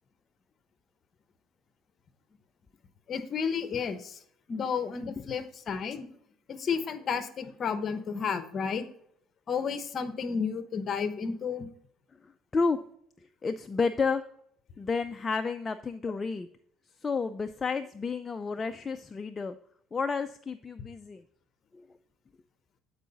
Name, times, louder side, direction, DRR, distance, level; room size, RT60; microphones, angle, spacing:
voice 1, 3.1-4.2 4.5-6.1 6.5-8.9 9.5-11.7, left 6 dB, 40° left, 11 dB, 0.8 m, -32 dB
voice 2, 12.2-12.9 13.4-14.2 14.8-16.5 17.0-19.6 19.9-21.2 21.7-21.8, left 4 dB, 25° left, 8 dB, 0.3 m, -31 dB
8.1 x 4.6 x 4.0 m, 0.67 s
cardioid pair, 105°, 0 cm